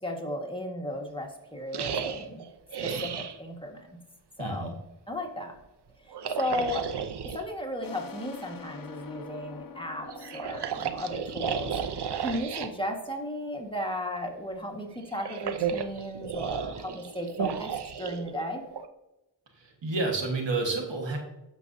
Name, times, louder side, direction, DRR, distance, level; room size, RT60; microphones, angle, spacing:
voice 1, 0.0-2.4 2.8-4.0 4.4-4.8 5.1-5.5 6.0-6.9 7.3-11.8 12.2-17.7 18.0-18.6, left 1 dB, 10° left, 1 dB, 1.6 m, -35 dB
sound 1, 1.7-3.4 6.1-7.4 10.1-12.7 15.0-18.9, right 7 dB, 65° right, 0.7 m, -33 dB
voice 2, 4.4-4.7 19.5-21.2, right 3 dB, 90° right, 2 dB, 1.6 m, -30 dB
sound 2, 7.8-13.1, left 5 dB, 50° left, 0.8 m, -47 dB
9.1 x 6.8 x 2.7 m, 0.97 s
cardioid pair, 50°, 42 cm